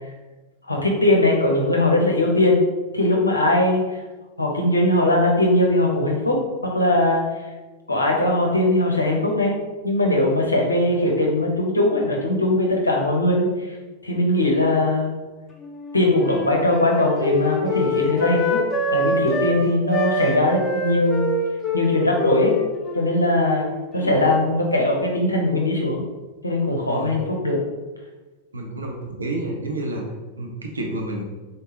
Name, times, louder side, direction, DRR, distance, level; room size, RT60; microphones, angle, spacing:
voice 1, 0.7-2.6 2.9-4.0 4.4-6.4 6.7-7.2 7.9-9.6 9.8-13.8 14.0-15.1 15.9-18.6 18.9-21.3 21.7-22.6 22.9-23.7 23.9-26.0 26.4-27.6, left 1 dB, 80° left, -1 dB, 0.8 m, -20 dB
Wind instrument woodwind instrument, 15.6-19.6 19.9-24.4, left 1 dB, 20° left, 0.7 m, -26 dB
voice 2, 28.5-30.0 30.4-31.2, right 1 dB, 75° right, 0 dB, 0.7 m, -29 dB
3.9 x 3.6 x 2.8 m, 1.2 s
figure-of-eight pair, 90°, 0 cm